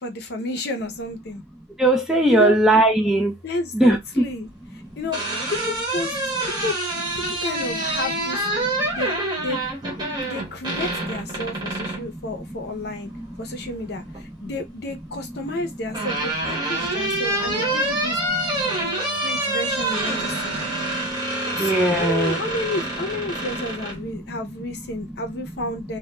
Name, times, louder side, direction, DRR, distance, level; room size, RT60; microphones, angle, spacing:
voice 1, 0.0-1.4 2.3-2.6 3.4-5.2 5.5-6.1 6.6-6.7 7.1-8.4 8.9-9.1 9.4-9.6 10.2-13.1 13.4-18.2 19.2-20.6 21.6-26.0, left 2 dB, 55° left, 0.6 m, -31 dB
voice 2, 1.8-3.4 3.7-4.3 4.8-4.9 8.6-9.0 10.0-10.2 11.4-14.0 14.3-14.5 16.7-17.2 17.6-17.7 18.3-18.9 20.2-21.2 21.6-22.4 23.3-23.5 23.9-24.4 24.7-25.5, right 1 dB, 5° right, 0.3 m, -24 dB
sound 1, 4.8-12.1 13.5-14.2 15.5-24.0, right 1 dB, 20° right, 0.8 m, -27 dB
Wind instrument woodwind instrument, 17.3-21.2, right 8 dB, 70° right, 0.5 m, -38 dB
2.2 x 2.1 x 2.9 m
head